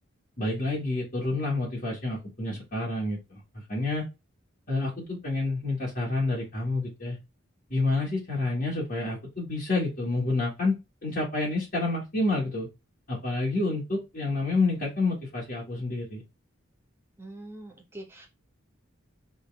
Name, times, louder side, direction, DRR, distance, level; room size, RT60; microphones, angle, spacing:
voice 1, 0.4-3.4 3.7-4.1 4.7-7.2 7.7-12.7 13.1-16.2, left 2 dB, 45° left, -6 dB, 2.2 m, -29 dB
voice 2, 17.2-18.3, right 1 dB, 10° right, 0 dB, 1.5 m, -43 dB
4.0 x 3.8 x 3.5 m, 0.24 s
head